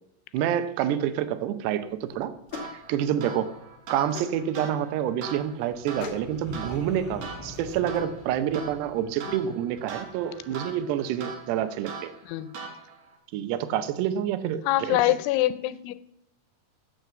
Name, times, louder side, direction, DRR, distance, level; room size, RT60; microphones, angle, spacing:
voice 1, 0.3-2.3 2.7-3.5 3.9-12.1 13.3-15.0, right 10 dB, 75° right, 11 dB, 2.7 m, -28 dB
sound 1, 1.9-8.0, left 5 dB, 75° left, 1.6 m, -44 dB
sound 2, 2.5-13.2, right 5 dB, 60° right, 1.9 m, -42 dB
sound 3, 5.7-11.4, left 1 dB, 10° left, 1.7 m, -46 dB
voice 2, 14.7-15.9, left 15 dB, 90° left, 14 dB, 3.0 m, -25 dB
9.2 x 7.1 x 7.9 m, 0.81 s
omnidirectional pair, 5.3 m